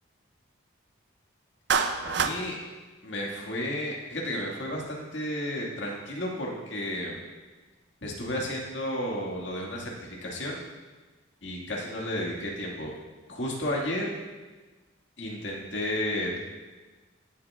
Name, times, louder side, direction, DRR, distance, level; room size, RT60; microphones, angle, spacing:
Clapping, 1.7-2.4, right 5 dB, 60° right, 0.5 m, -25 dB
voice 1, 2.0-2.6 3.0-7.2 8.0-10.6 11.4-12.9 13.3-14.1 15.2-16.4, left 1 dB, 65° left, -2 dB, 1.9 m, -32 dB
16.5 x 7.7 x 2.4 m, 1.3 s
head